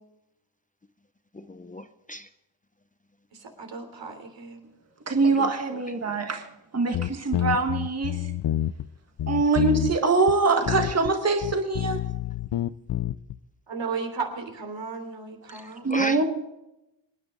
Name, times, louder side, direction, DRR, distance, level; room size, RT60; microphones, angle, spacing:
voice 1, 1.3-2.3 5.2-5.5 6.0-6.3 15.5-16.2, left 1 dB, 20° left, 0.6 m, -36 dB
voice 2, 3.3-4.7 13.7-15.9, right 4 dB, 70° right, 3.4 m, -35 dB
voice 3, 5.1-6.4 6.7-8.2 9.3-12.0 15.8-16.2, right 3 dB, 35° right, 1.7 m, -23 dB
sound 1, 6.9-8.9 9.2-10.0 10.3-10.4 10.7-11.1 11.4-13.4, left 12 dB, 60° left, 0.6 m, -28 dB
26.5 x 10.0 x 3.8 m
wide cardioid pair, 115°, 46 cm